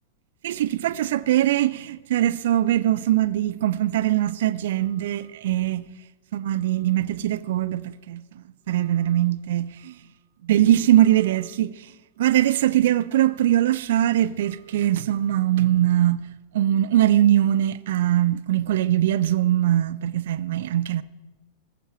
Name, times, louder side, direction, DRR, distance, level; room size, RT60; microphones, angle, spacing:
voice 1, 0.4-5.9 6.3-8.2 8.7-10.0 10.4-11.7 12.2-16.3 16.5-21.0, right 12 dB, 55° right, 0.6 m, -21 dB
20.5 x 14.5 x 4.4 m
figure-of-eight pair, 90°, 0 cm